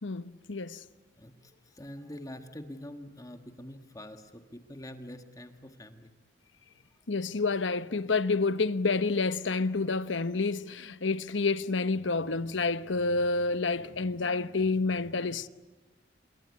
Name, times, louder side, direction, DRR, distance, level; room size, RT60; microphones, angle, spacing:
voice 1, 0.0-0.8 7.1-15.5, left 3 dB, 80° left, 1.0 m, -29 dB
voice 2, 1.2-6.1, left 1 dB, 20° left, 1.5 m, -45 dB
27.0 x 23.0 x 9.6 m
head